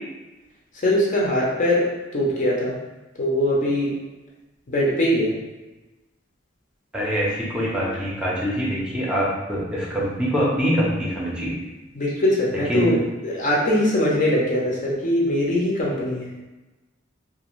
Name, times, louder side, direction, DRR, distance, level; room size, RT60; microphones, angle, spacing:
voice 1, 0.8-1.8 2.1-2.8 3.2-3.9 4.7-5.3 12.0-13.0 13.2-16.3, left 1 dB, 45° left, -4 dB, 0.6 m, -21 dB
voice 2, 6.9-11.5 12.7-13.0, equal, 5° right, -6 dB, 0.6 m, -24 dB
2.5 x 2.5 x 3.0 m, 1.1 s
head